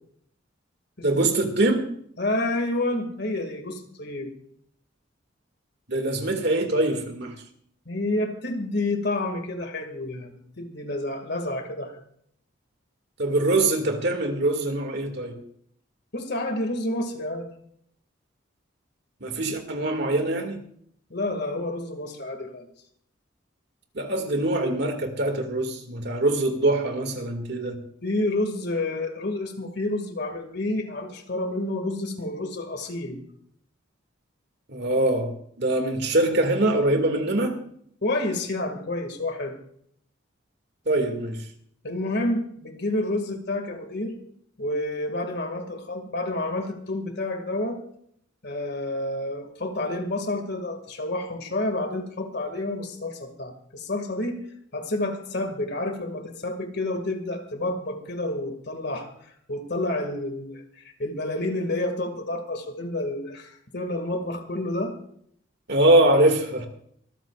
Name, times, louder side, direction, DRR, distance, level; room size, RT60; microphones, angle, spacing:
voice 1, 1.0-1.8 5.9-7.3 13.2-15.4 19.2-20.6 23.9-27.8 34.7-35.3 35.6-37.5 40.9-41.4 65.7-66.7, right 2 dB, 60° right, 5 dB, 2.3 m, -23 dB
voice 2, 2.2-4.3 7.9-12.0 16.1-17.5 21.1-22.7 28.0-33.2 38.0-39.6 41.8-44.1 44.6-47.8 48.4-54.4 54.7-65.0, left 2 dB, 55° left, 5 dB, 2.2 m, -29 dB
25.0 x 14.0 x 2.5 m, 0.66 s
head